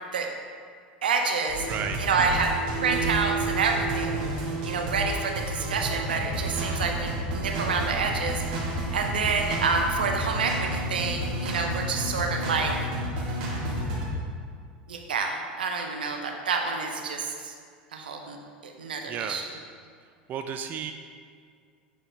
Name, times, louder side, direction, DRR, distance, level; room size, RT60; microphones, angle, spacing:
voice 1, 1.0-1.7 2.0-2.5 2.8-4.3 4.6-8.4 8.9-12.9 14.9-17.5 17.9-18.4 18.6-19.4, right 4 dB, 85° right, 2 dB, 0.7 m, -28 dB
sound 1, 1.5-14.1, right 1 dB, 65° right, 1.5 m, -31 dB
voice 2, 1.6-2.0 19.1-19.4 20.0-20.9, right 7 dB, 35° right, 6 dB, 0.4 m, -33 dB
8.0 x 4.3 x 3.3 m, 2.1 s
hypercardioid pair, 85°, 5 cm